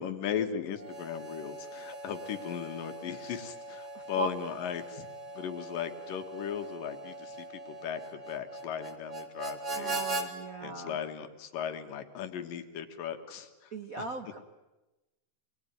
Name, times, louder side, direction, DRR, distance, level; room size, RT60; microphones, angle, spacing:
voice 1, 0.0-5.1 5.3-10.0 10.6-14.1, left 8 dB, 85° left, 7 dB, 3.4 m, -37 dB
Harmonica, 0.8-10.3, right 2 dB, 25° right, 2.4 m, -40 dB
voice 2, 3.9-4.3 9.7-11.0 13.7-14.4, right 3 dB, 65° right, 7 dB, 0.8 m, -38 dB
26.5 x 21.5 x 9.5 m, 1.0 s
omnidirectional pair, 3.8 m